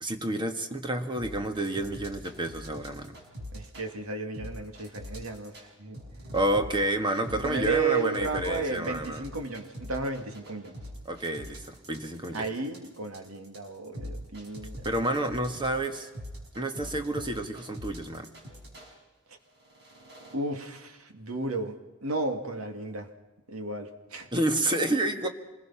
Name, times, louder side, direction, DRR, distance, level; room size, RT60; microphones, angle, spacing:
voice 1, 0.0-3.2 6.3-9.2 11.0-12.5 14.8-16.1 16.5-18.3 24.3-25.3, right 1 dB, 20° right, 6 dB, 1.6 m, -29 dB
sound 1, 1.1-3.9 4.3-5.7 5.9-18.9 19.5-20.3, equal, 50° right, 6.1 m, -43 dB
voice 2, 3.5-6.0 7.4-10.8 12.3-14.8 20.3-23.1 23.5-24.3, right 3 dB, 85° right, 5 dB, 2.4 m, -33 dB
27.0 x 21.0 x 5.8 m, 1.1 s
head